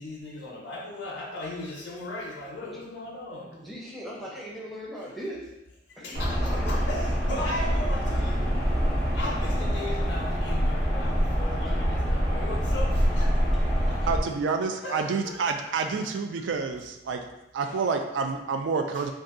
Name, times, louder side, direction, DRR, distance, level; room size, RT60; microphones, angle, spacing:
voice 1, 0.0-3.6 5.9-8.4 9.1-14.0 14.8-15.7 16.0-16.1 17.6-17.7 18.9-19.0, left 1 dB, 75° left, -4 dB, 0.5 m, -37 dB
voice 2, 3.5-5.5 6.0-6.2 6.5-6.9 7.3-7.4 11.6-11.7 13.5-13.9, equal, ahead, -5 dB, 0.5 m, -40 dB
sound 1, 6.1-14.2, equal, 50° right, 0.9 m, -25 dB
voice 3, 14.1-17.2 17.5-19.1, right 5 dB, 80° right, 6 dB, 0.3 m, -28 dB
2.6 x 2.3 x 3.6 m, 0.92 s
head